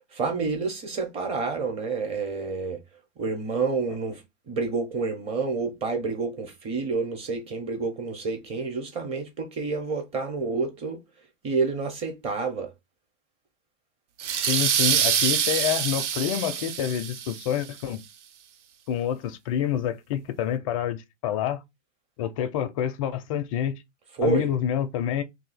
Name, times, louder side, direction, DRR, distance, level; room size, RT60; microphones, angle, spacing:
voice 1, 0.1-2.8 3.2-4.2 4.5-11.0 11.4-12.7 24.1-24.5, right 4 dB, 15° right, 0.8 m, -29 dB
sound 1, 14.2-17.6, right 8 dB, 70° right, 0.7 m, -25 dB
voice 2, 14.5-18.0 18.9-21.6 22.2-23.7 24.2-25.2, left 10 dB, 30° left, 0.4 m, -27 dB
2.7 x 2.7 x 4.1 m
hypercardioid pair, 140°, 37 cm